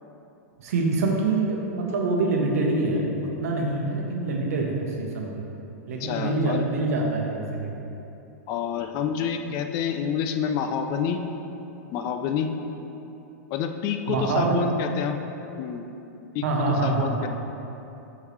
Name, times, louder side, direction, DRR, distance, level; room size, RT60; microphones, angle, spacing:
voice 1, 0.6-5.4 5.9-7.7 14.1-14.8 16.4-17.3, right 3 dB, 70° right, 0 dB, 1.0 m, -25 dB
voice 2, 6.0-6.6 8.5-11.2 11.9-12.5 13.5-15.2 15.6-15.9 16.3-16.5 16.8-17.3, left 7 dB, 40° left, 6 dB, 0.4 m, -28 dB
8.0 x 3.7 x 3.2 m, 3.0 s
hypercardioid pair, 125°, 8 cm